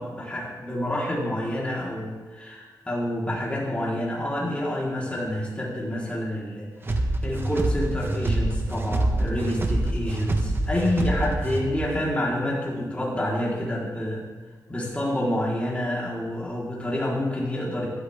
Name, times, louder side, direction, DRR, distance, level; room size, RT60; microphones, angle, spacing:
voice 1, 0.0-14.2 14.7-17.9, left 1 dB, 20° left, -5 dB, 4.2 m, -28 dB
sound 1, 6.8-11.9, right 2 dB, 35° right, 1.3 m, -26 dB
17.5 x 12.5 x 3.7 m, 1.4 s
wide cardioid pair, 115°, 7 cm